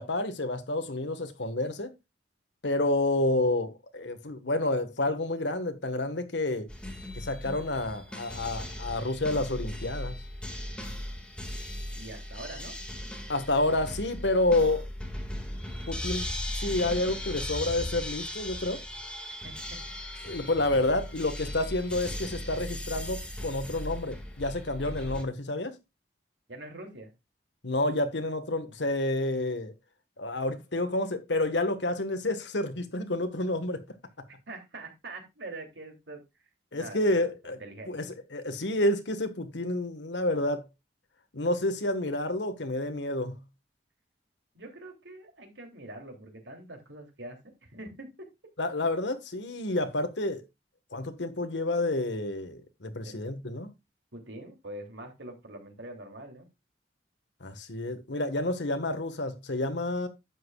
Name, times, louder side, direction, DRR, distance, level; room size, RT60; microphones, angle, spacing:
voice 1, 0.0-1.9 2.6-6.7 7.2-10.1 13.3-14.9 15.9-16.3 16.5-18.8 20.2-25.8 27.6-29.7 30.2-33.8 36.7-37.6 37.9-40.6 41.3-43.4 48.6-50.4 50.9-53.7 57.4-60.1, left 2 dB, 85° left, 1.5 m, -29 dB
sound 1, 6.7-25.2, left 1 dB, 5° left, 2.0 m, -37 dB
voice 2, 11.9-12.8 19.3-19.5 20.0-20.1 26.5-27.1 34.5-36.2 36.7-37.9 44.5-48.3 53.0-53.1 54.1-56.5, right 2 dB, 85° right, 3.0 m, -44 dB
11.0 x 8.2 x 2.4 m
head